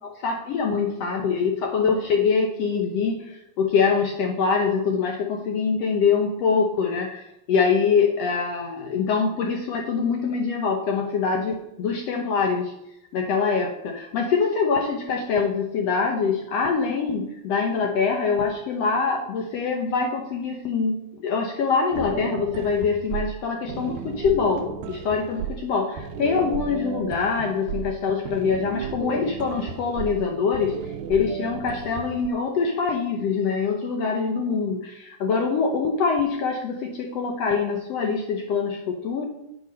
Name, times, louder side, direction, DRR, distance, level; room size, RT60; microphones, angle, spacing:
voice 1, 0.0-12.7 13.1-30.8 31.1-39.3, left 5 dB, 75° left, 2 dB, 1.5 m, -24 dB
sound 1, 21.9-32.3, right 8 dB, 90° right, 2.5 m, -34 dB
8.3 x 6.9 x 5.2 m, 0.84 s
omnidirectional pair, 4.0 m